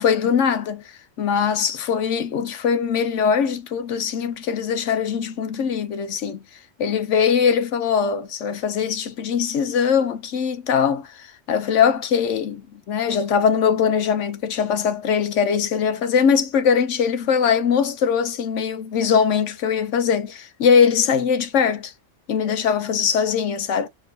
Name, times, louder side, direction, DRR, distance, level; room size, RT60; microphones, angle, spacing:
voice 1, 0.0-6.4 6.8-21.9 22.3-23.9, left 7 dB, 70° left, 1.1 m, -21 dB
4.6 x 2.2 x 2.7 m
omnidirectional pair, 1.3 m